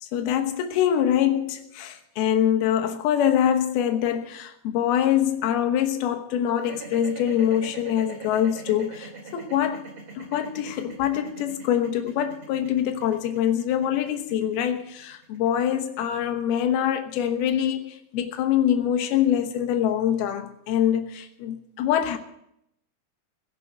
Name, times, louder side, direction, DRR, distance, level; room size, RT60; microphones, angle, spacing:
voice 1, 0.0-9.9 10.2-22.2, left 10 dB, 75° left, 3.0 m, -24 dB
sound 1, 6.6-16.8, right 4 dB, 45° right, 3.4 m, -42 dB
16.5 x 7.5 x 8.9 m
omnidirectional pair, 4.6 m